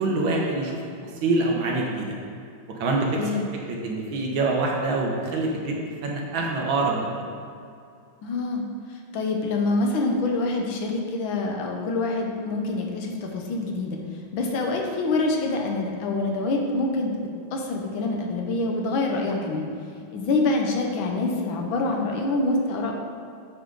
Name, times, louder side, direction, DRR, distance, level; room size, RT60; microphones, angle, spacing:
voice 1, 0.0-2.2 2.8-3.2 3.7-7.3, right 2 dB, 70° right, -1 dB, 1.7 m, -25 dB
voice 2, 3.2-3.5 8.2-14.0 14.3-19.7 20.1-22.9, left 2 dB, 70° left, 1 dB, 1.6 m, -26 dB
9.0 x 4.9 x 3.9 m, 2.4 s
omnidirectional pair, 2.3 m